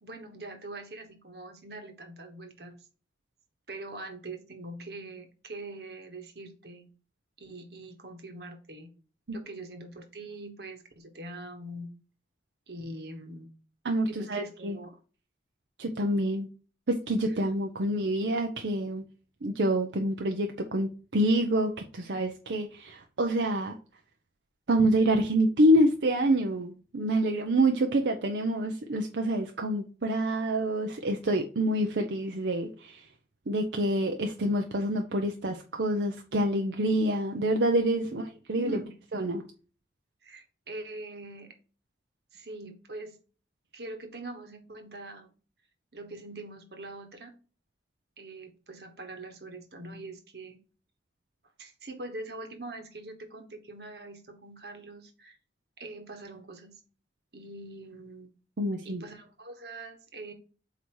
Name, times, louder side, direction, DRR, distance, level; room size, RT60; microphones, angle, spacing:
voice 1, 0.0-2.8 3.7-6.9 7.4-8.9 9.3-11.9 12.7-13.5 14.1-15.0 38.0-38.1 38.6-38.9 40.2-41.5 42.3-43.2 43.7-45.3 45.9-47.3 48.2-50.6 51.6-55.4 55.8-56.8 57.3-58.3 58.8-60.3, right 2 dB, 70° right, 6 dB, 1.3 m, -43 dB
voice 2, 13.8-14.8 15.8-16.5 16.9-19.0 19.4-23.7 24.7-33.1 33.5-38.2 38.5-38.8 39.1-39.4 58.6-59.0, right 1 dB, 90° right, 4 dB, 0.7 m, -27 dB
8.1 x 2.9 x 4.7 m, 0.37 s
head